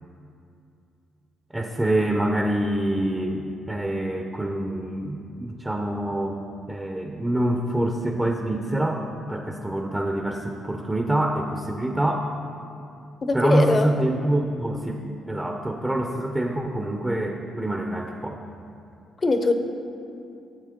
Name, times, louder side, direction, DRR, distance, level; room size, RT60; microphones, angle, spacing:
voice 1, 1.5-6.4 6.7-12.3 13.3-15.0 15.3-18.4, right 1 dB, 10° right, 3 dB, 0.7 m, -26 dB
voice 2, 13.2-13.9 19.2-19.5, left 3 dB, 35° left, 7 dB, 0.8 m, -21 dB
12.0 x 7.2 x 3.7 m, 2.6 s
cardioid pair, 90°, 0 cm